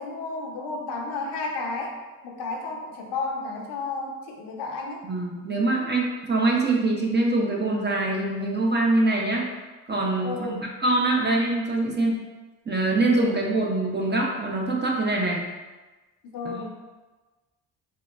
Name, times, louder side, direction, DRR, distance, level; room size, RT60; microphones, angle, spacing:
voice 1, 0.0-2.0 2.2-5.1 10.2-10.6 13.3-13.4 16.3-16.7, left 3 dB, 70° left, 0 dB, 0.6 m, -32 dB
voice 2, 5.0-9.5 9.9-12.2 12.7-15.4 16.4-16.6, right 2 dB, 25° right, -1 dB, 0.6 m, -24 dB
3.6 x 2.1 x 2.3 m, 1.2 s
supercardioid pair, 60°, 43 cm